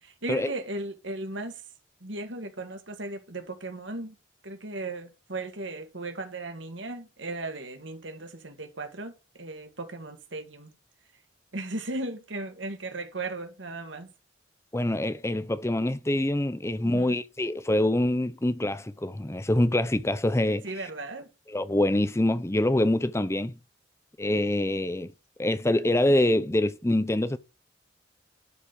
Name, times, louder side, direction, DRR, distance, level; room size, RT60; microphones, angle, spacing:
voice 1, 0.0-1.6 2.0-4.2 4.4-10.7 11.5-14.1 16.8-17.1 20.6-21.3, right 2 dB, 75° right, 2.0 m, -36 dB
voice 2, 14.7-20.6 21.5-23.5 24.2-25.1 25.4-27.4, left 1 dB, 15° left, 0.7 m, -25 dB
12.0 x 4.3 x 5.0 m
head